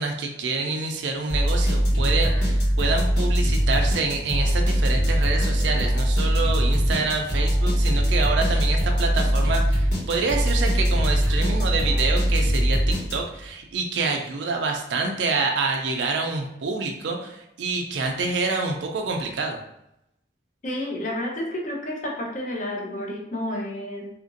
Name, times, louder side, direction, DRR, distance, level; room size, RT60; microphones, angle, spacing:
voice 1, 0.0-19.6, right 3 dB, 80° right, 2 dB, 0.4 m, -27 dB
sound 1, 1.3-13.5, equal, 75° left, 1.4 m, -22 dB
voice 2, 20.6-24.1, left 1 dB, 45° left, -1 dB, 0.6 m, -30 dB
2.8 x 2.5 x 2.6 m, 0.83 s
head